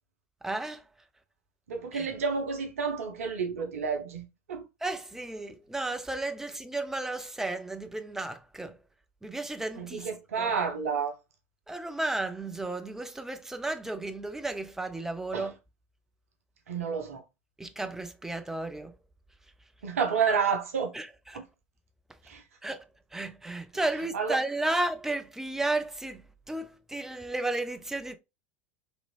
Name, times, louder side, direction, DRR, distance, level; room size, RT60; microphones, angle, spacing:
voice 1, 0.4-0.8 1.9-2.1 4.8-8.8 9.2-10.1 10.4-10.5 11.7-15.5 17.6-18.9 20.9-21.4 22.6-22.8 23.1-28.2, right 2 dB, 5° right, 0.4 m, -33 dB
voice 2, 1.7-4.6 9.8-11.1 15.3-15.5 16.7-17.2 19.8-20.9 22.3-22.4 24.1-24.4, right 6 dB, 70° right, 0.6 m, -30 dB
2.9 x 2.6 x 2.3 m
figure-of-eight pair, 80°, 8 cm